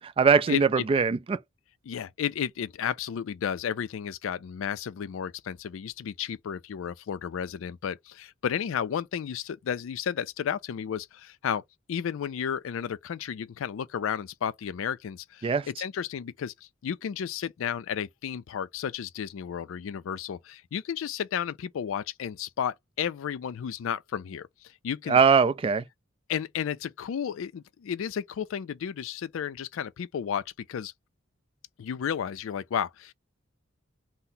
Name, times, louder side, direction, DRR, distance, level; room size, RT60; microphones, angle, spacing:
voice 1, 0.2-1.4 15.4-15.7 25.1-25.9, right 5 dB, 25° right, 0.3 m, -21 dB
voice 2, 1.9-11.6 11.9-16.5 16.8-24.5 24.8-25.2 26.3-30.9 31.8-33.1, left 8 dB, 70° left, 0.4 m, -32 dB
2.7 x 2.0 x 3.9 m
head